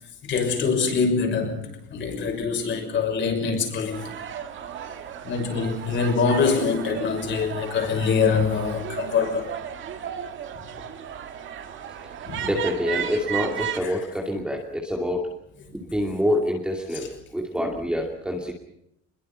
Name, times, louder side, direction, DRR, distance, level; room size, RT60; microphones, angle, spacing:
voice 1, 0.2-4.1 5.2-9.5 12.3-12.5 13.8-14.0 16.9-17.1, left 5 dB, 35° left, 6.1 m, -24 dB
sound 1, 3.9-13.8, right 9 dB, 35° right, 2.1 m, -35 dB
voice 2, 12.4-15.3 15.8-18.5, equal, 5° right, 2.6 m, -26 dB
26.5 x 22.5 x 5.6 m
cardioid pair, 180°, 32 cm